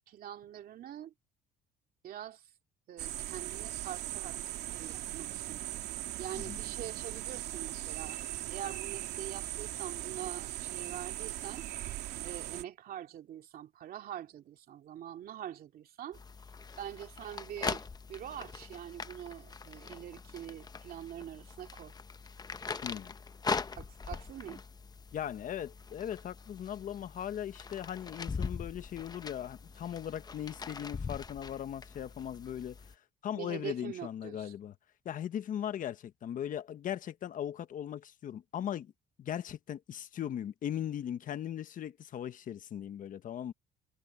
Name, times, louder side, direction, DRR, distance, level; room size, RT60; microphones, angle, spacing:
voice 1, 0.1-1.1 2.0-2.5 2.9-5.6 6.2-8.2 8.5-11.6 12.2-16.2 16.8-21.9 23.8-24.6 33.3-34.5, right 10 dB, 60° right, 2.6 m, -44 dB
sound 1, 3.0-12.6, right 14 dB, 80° right, 2.8 m, -39 dB
sound 2, 16.1-32.9, left 5 dB, 25° left, 0.8 m, -42 dB
voice 2, 22.8-23.1 25.1-32.9 33.2-34.7 35.0-38.9 39.2-43.5, left 10 dB, 50° left, 1.2 m, -38 dB
cardioid pair, 110°, 17 cm